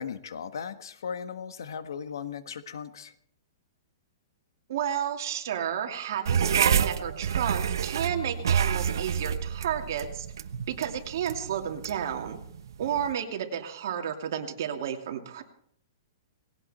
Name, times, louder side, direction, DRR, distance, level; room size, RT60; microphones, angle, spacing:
voice 1, 0.0-3.1, left 7 dB, 85° left, 10 dB, 1.5 m, -37 dB
voice 2, 4.7-10.3 10.7-12.4 12.8-15.4, right 9 dB, 55° right, 4 dB, 2.6 m, -31 dB
sound 1, 6.3-13.1, right 8 dB, 80° right, 1.1 m, -29 dB
19.5 x 17.0 x 4.3 m, 0.65 s
hypercardioid pair, 160°, 2 cm